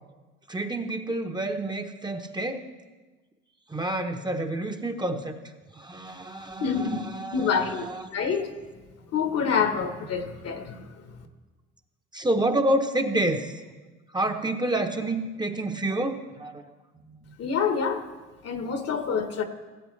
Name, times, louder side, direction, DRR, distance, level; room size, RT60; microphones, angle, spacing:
voice 1, 0.5-2.6 3.7-5.3 5.8-8.1 12.1-13.5 14.1-16.6 17.0-17.3, right 1 dB, 15° right, 4 dB, 0.9 m, -28 dB
voice 2, 6.6-7.0 7.3-7.8 8.1-8.5 9.1-11.2 17.4-18.0 18.4-19.4, left 6 dB, 55° left, 7 dB, 1.3 m, -27 dB
16.5 x 7.7 x 3.2 m, 1.2 s
supercardioid pair, 75°, 30 cm